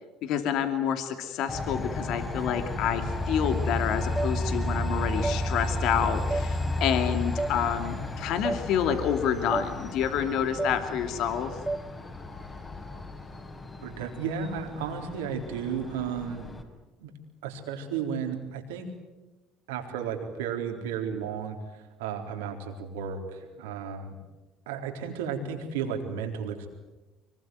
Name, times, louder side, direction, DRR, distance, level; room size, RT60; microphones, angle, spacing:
voice 1, 0.2-11.5, left 8 dB, 65° left, 7 dB, 2.6 m, -28 dB
Train, 1.5-16.6, left 2 dB, 30° left, 5.3 m, -33 dB
sound 1, 4.2-4.3 5.2-5.4 6.3-6.5 7.4-7.5 8.4-8.6 9.5-9.7 10.6-10.7 11.7-11.8, right 3 dB, 15° right, 1.2 m, -29 dB
voice 2, 13.8-16.5 17.0-17.1 17.4-18.9 19.7-24.2 24.7-26.7, right 7 dB, 85° right, 3 dB, 3.9 m, -33 dB
25.0 x 22.0 x 9.5 m, 1.1 s
hypercardioid pair, 75°, 0 cm